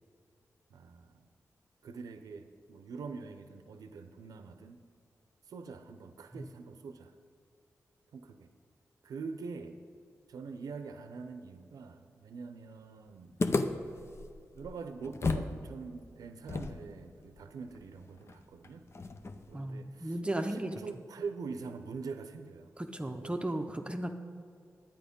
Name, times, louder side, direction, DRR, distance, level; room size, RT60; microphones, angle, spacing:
voice 1, 0.7-1.2 1.8-4.8 5.5-7.1 8.1-8.5 9.0-9.8 10.3-13.5 13.7-14.0 14.5-18.9 19.5-20.1 20.5-22.7 23.0-23.4, right 4 dB, 85° right, 8 dB, 0.6 m, -44 dB
sound 1, 13.4-15.6 15.8-15.9 16.5-19.6, left 3 dB, 45° left, 0.7 m, -35 dB
voice 2, 19.5-20.7 22.8-24.1, right 1 dB, 20° right, 5 dB, 0.7 m, -35 dB
10.0 x 8.7 x 5.2 m, 2.3 s
cardioid pair, 55°, 6 cm